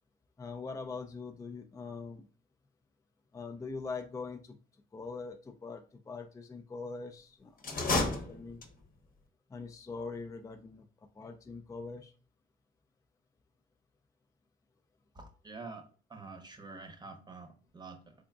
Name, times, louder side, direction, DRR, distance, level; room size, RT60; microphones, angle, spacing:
voice 1, 0.4-2.3 3.3-4.6 4.9-8.6 9.5-10.9 11.1-12.1, left 4 dB, 15° left, 5 dB, 0.3 m, -42 dB
sound 1, 7.6-9.0, left 2 dB, 45° left, 0.8 m, -32 dB
voice 2, 15.1-15.8 16.1-18.1, right 3 dB, 20° right, 6 dB, 0.8 m, -47 dB
3.7 x 3.5 x 2.4 m, 0.38 s
cardioid pair, 90°, 20 cm